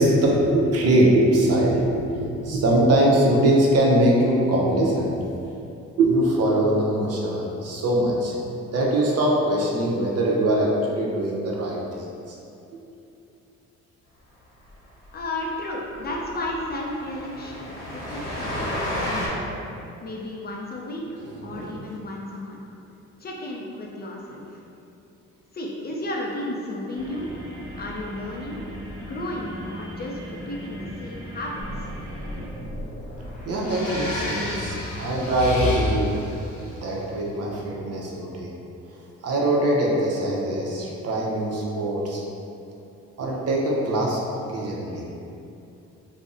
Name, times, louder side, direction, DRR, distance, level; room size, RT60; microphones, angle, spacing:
voice 1, 0.0-5.2 6.0-8.3 8.6-12.4 21.2-21.8 33.4-36.2 36.7-38.5 39.2-42.2 43.2-45.1, right 1 dB, 55° right, -3 dB, 0.6 m, -22 dB
Train, 14.7-14.8 15.1-15.2 15.5-15.6 15.9-19.3, left 1 dB, 50° left, 0.9 m, -32 dB
voice 2, 15.1-19.5 20.0-22.6 23.2-24.6 25.5-27.3 27.8-28.6 29.0-31.9, left 1 dB, 35° left, -2 dB, 0.4 m, -33 dB
sound 1, 26.9-32.5, equal, 15° right, 0.6 m, -39 dB
sound 2, 31.6-37.3, left 1 dB, 90° left, 0.8 m, -31 dB
2.5 x 2.0 x 3.7 m, 2.7 s
cardioid pair, 90°, 30 cm